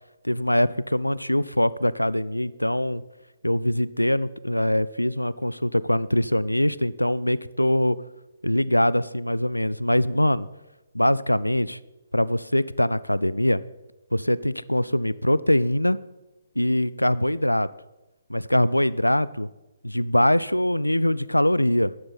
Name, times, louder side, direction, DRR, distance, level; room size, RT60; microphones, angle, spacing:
voice 1, 0.2-3.0 3.4-8.0 8.4-10.5 10.9-11.8 12.1-13.6 14.1-16.0 16.6-17.7 18.3-19.5 19.8-21.9, left 1 dB, 90° left, 19 dB, 0.4 m, -23 dB
12.5 x 11.0 x 4.2 m, 1.0 s
figure-of-eight pair, 135°, 0 cm